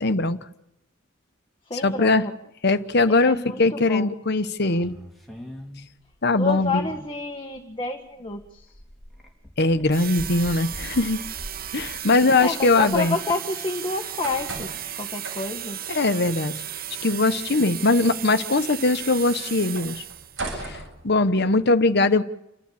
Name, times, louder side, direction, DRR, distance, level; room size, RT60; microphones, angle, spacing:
voice 1, 0.0-0.4 1.8-2.2 2.6-4.9 6.2-6.9 9.6-11.2 11.7-13.2 15.9-16.5 17.0-20.0 20.6-20.8 21.0-22.2, left 3 dB, 55° left, 11 dB, 1.1 m, -21 dB
voice 2, 1.7-2.3 3.1-4.2 6.3-8.7 12.4-14.7 15.0-15.8, left 3 dB, 25° left, 3 dB, 1.5 m, -29 dB
sound 1, 4.6-7.7 8.0-13.0, left 1 dB, ahead, 3.8 m, -43 dB
sound 2, 9.9-20.5, right 10 dB, 45° right, 0.8 m, -35 dB
sound 3, 13.9-21.7, right 2 dB, 75° right, 7.5 m, -40 dB
29.5 x 12.5 x 8.5 m, 0.88 s
head